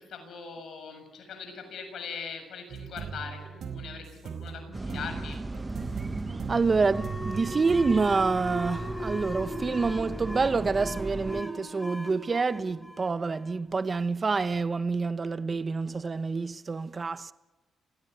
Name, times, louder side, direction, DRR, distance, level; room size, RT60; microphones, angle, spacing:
voice 1, 0.0-5.4, left 6 dB, 70° left, 7.1 m, -41 dB
sound 1, 2.7-8.0, right 6 dB, 65° right, 4.1 m, -40 dB
sound 2, 4.7-11.4, right 2 dB, 20° right, 1.6 m, -37 dB
voice 2, 6.5-17.3, right 4 dB, 35° right, 1.0 m, -27 dB
sound 3, 6.9-14.1, equal, 10° left, 3.7 m, -39 dB
28.5 x 18.0 x 9.4 m
cardioid pair, 80°, 0 cm